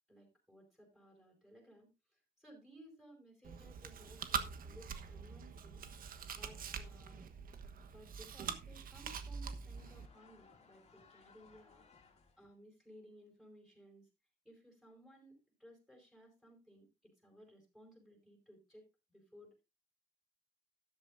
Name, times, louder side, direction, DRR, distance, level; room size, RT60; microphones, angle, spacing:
voice 1, 0.1-7.3 7.8-14.1 14.4-19.6, equal, ahead, 1 dB, 5.2 m, -60 dB
Chewing mastication, 3.4-10.1, right 6 dB, 55° right, 1.2 m, -44 dB
sound 1, 9.8-12.5, left 5 dB, 40° left, 2.7 m, -64 dB
13.0 x 11.5 x 2.6 m, 0.25 s
cardioid pair, 155°, 17 cm